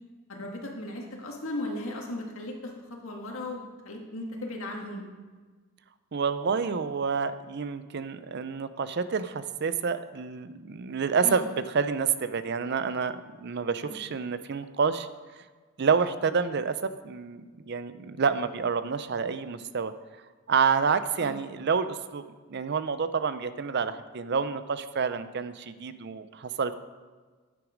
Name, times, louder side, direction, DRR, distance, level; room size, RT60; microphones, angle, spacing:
voice 1, 0.3-5.0 11.2-11.4 13.9-14.0 21.2-21.4, left 1 dB, 85° left, 1 dB, 1.9 m, -37 dB
voice 2, 6.1-15.1 15.8-16.8 17.0-17.4 17.7-19.9 20.5-22.2 22.5-26.7, right 5 dB, 55° right, 12 dB, 0.5 m, -28 dB
9.5 x 8.0 x 5.1 m, 1.4 s
head